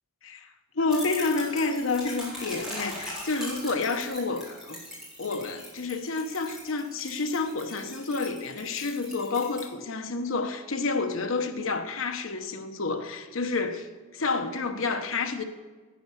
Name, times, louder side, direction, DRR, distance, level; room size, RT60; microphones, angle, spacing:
voice 1, 0.7-4.8 5.2-13.9 14.1-15.4, left 3 dB, 85° left, 1.0 m, -29 dB
sound 1, 0.9-9.6, equal, 5° right, 4.3 m, -40 dB
11.0 x 9.3 x 7.0 m
head